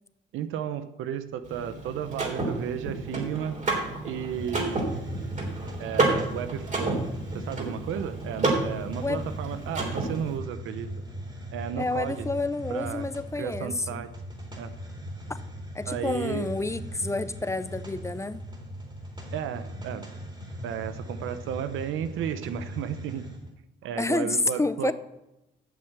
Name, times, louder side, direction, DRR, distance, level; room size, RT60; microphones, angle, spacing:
voice 1, 0.3-3.6 4.0-4.9 5.8-7.0 7.3-10.9 11.5-12.3 12.7-13.0 13.4-14.1 14.6-14.7 15.9-16.4 19.3-20.1 20.6-23.3 23.8-24.9, right 9 dB, 85° right, 11 dB, 0.8 m, -33 dB
Car / Mechanisms, 1.4-10.4, right 2 dB, 40° right, 3.4 m, -30 dB
Hiss, 4.2-23.5, equal, 20° right, 3.4 m, -39 dB
voice 2, 11.8-14.0 15.7-18.4 24.0-24.9, left 2 dB, 15° left, 14 dB, 0.5 m, -29 dB
8.6 x 7.2 x 7.4 m, 0.94 s
cardioid pair, 90°, 20 cm